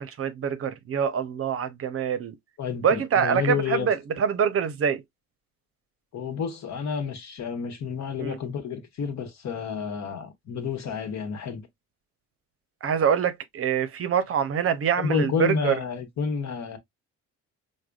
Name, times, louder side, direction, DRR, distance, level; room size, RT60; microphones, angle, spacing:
voice 1, 0.0-2.4 2.8-5.0 8.2-8.4 12.8-15.7, right 7 dB, 50° right, 0.6 m, -25 dB
voice 2, 2.6-3.9 6.1-11.6 15.0-16.8, left 6 dB, 65° left, 1.1 m, -30 dB
4.8 x 2.1 x 2.3 m
cardioid pair, 90°, 30 cm